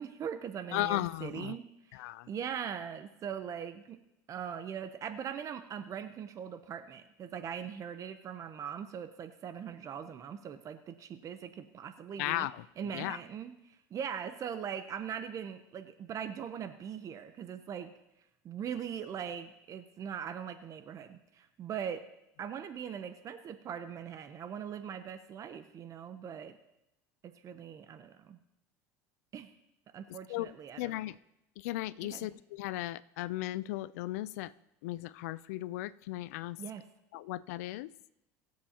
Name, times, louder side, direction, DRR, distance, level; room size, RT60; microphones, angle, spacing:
voice 1, 0.0-2.0 2.3-4.0 4.3-12.5 12.8-17.9 18.4-22.0 22.4-26.6 27.2-28.4 29.3-29.5 29.9-30.9 32.0-32.3 36.6-36.8, right 8 dB, 40° right, 10 dB, 0.8 m, -41 dB
voice 2, 0.7-1.5 1.9-2.3 12.2-12.6 12.9-13.2 30.3-30.5 30.8-31.2 31.6-34.5 34.8-36.6 37.1-37.9, left 16 dB, 85° left, 18 dB, 0.4 m, -36 dB
22.0 x 7.6 x 2.9 m, 0.88 s
supercardioid pair, 100°, 8 cm